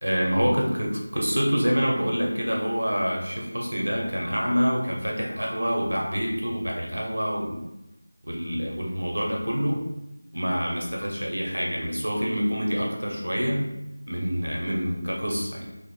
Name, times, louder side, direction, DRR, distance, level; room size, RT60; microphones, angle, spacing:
voice 1, 0.0-7.6 8.2-9.8 10.3-13.7 14.1-15.7, equal, 85° right, -1 dB, 1.1 m, -26 dB
3.0 x 2.6 x 4.4 m, 0.91 s
figure-of-eight pair, 170°, 0 cm